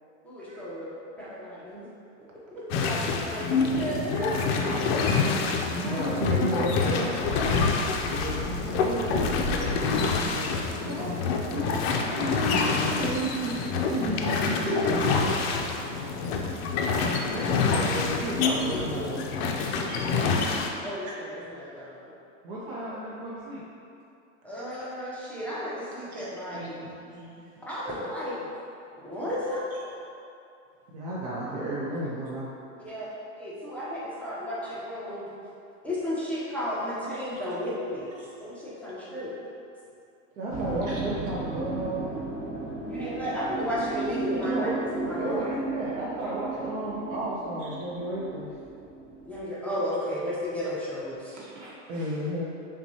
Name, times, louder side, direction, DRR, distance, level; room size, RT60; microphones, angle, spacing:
voice 1, 0.2-0.9 1.2-1.9 2.5-4.3 4.6-4.9 5.8-7.1 14.7-15.0 17.8-17.9 18.5-19.2 19.9-22.1 24.4-26.7 27.7-28.4 28.9-29.6 32.8-33.1 33.4-35.3 35.8-38.1 38.4-39.3 42.6-45.5 49.2-51.4, equal, 5° left, -9 dB, 0.5 m, -33 dB
sound 1, 2.7-20.7, left 4 dB, 50° left, 0.5 m, -27 dB
voice 2, 5.7-7.1 8.1-11.8 12.1-13.5 13.9-14.9 17.3-19.6 22.4-23.6 30.9-32.5 40.4-42.1 44.4-44.8 45.2-48.5 51.9-52.4, right 1 dB, 50° right, -7 dB, 0.8 m, -33 dB
sound 2, 7.2-11.8 12.0-12.1, left 1 dB, 25° left, 0.9 m, -36 dB
voice 3, 19.9-20.5 21.1-21.2 26.1-27.5 40.9-41.0 51.3-52.1, right 1 dB, 75° right, -4 dB, 1.1 m, -46 dB
sound 3, 40.5-49.4, right 3 dB, 35° right, 1.1 m, -35 dB
5.7 x 2.3 x 2.7 m, 2.6 s
supercardioid pair, 120°, 39 cm